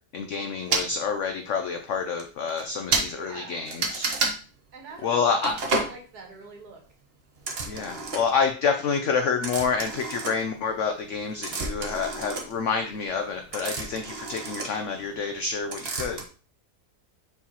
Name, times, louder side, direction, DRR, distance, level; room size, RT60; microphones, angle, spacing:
voice 1, 0.1-4.1 5.0-5.6 7.6-16.2, left 5 dB, 65° left, 5 dB, 0.8 m, -28 dB
sound 1, 0.7-0.9 1.7-1.8 2.2-2.3 2.5-2.6 2.9-3.1 3.7-4.4 5.4-5.9 7.4-8.4 9.4-10.8 11.1-15.4 15.7-16.2, right 3 dB, 40° right, 1.1 m, -30 dB
voice 2, 3.1-3.7 4.7-5.4 5.6-6.8 11.8-11.9, right 4 dB, 70° right, 2 dB, 1.9 m, -44 dB
7.0 x 4.7 x 2.9 m, 0.39 s
omnidirectional pair, 1.7 m